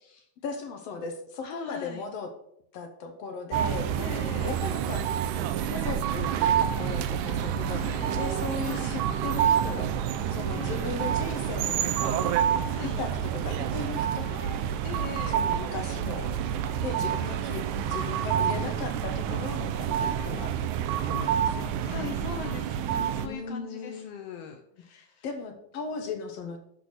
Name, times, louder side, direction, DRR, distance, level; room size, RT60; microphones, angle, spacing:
voice 1, 0.4-2.3 2.7-5.2 5.7-9.9 10.3-12.4 12.8-14.6 15.3-16.3 16.8-20.6 21.1-22.2 23.2-24.3 24.9-26.6, left 4 dB, 65° left, 5 dB, 1.8 m, -37 dB
voice 2, 1.4-2.1 3.9-4.6 7.7-8.2 8.6-9.0 10.5-11.0 12.7-13.0 14.8-15.4 20.0-20.1 21.9-25.2, left 8 dB, 85° left, 4 dB, 1.3 m, -41 dB
sound 1, 3.5-23.3, right 9 dB, 85° right, 2.1 m, -28 dB
11.5 x 4.1 x 6.1 m, 0.73 s
omnidirectional pair, 3.6 m